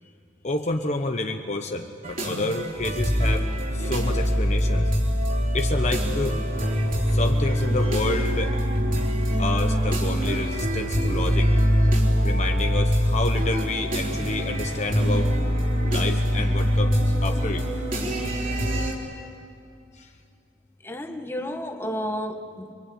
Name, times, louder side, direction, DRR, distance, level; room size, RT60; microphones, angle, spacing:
voice 1, 0.4-4.9 5.5-6.4 7.1-8.6 9.4-11.5 12.2-15.3 15.8-17.7 18.5-18.6 19.9-20.1, left 2 dB, 35° left, 4 dB, 1.1 m, -29 dB
sound 1, 2.0-18.9, equal, 45° right, 4.1 m, -23 dB
voice 2, 20.8-22.7, equal, 10° left, 4 dB, 1.5 m, -31 dB
27.5 x 23.5 x 8.6 m, 2.5 s
head